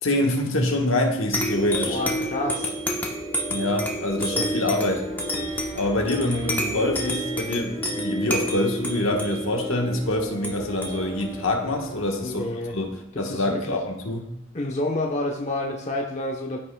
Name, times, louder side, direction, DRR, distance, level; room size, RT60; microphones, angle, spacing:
voice 1, 0.0-2.0 3.5-5.1 5.7-12.4 12.7-12.9 13.2-14.3, left 1 dB, 75° left, 1 dB, 1.3 m, -25 dB
sound 1, 1.3-12.4, equal, 10° left, 0.9 m, -29 dB
voice 2, 1.8-2.7 12.2-12.7 13.1-13.8 14.5-16.6, left 1 dB, 35° left, 0 dB, 0.9 m, -29 dB
Wind instrument woodwind instrument, 4.7-12.6, equal, 25° right, 1.8 m, -41 dB
14.0 x 5.7 x 2.2 m, 0.84 s
head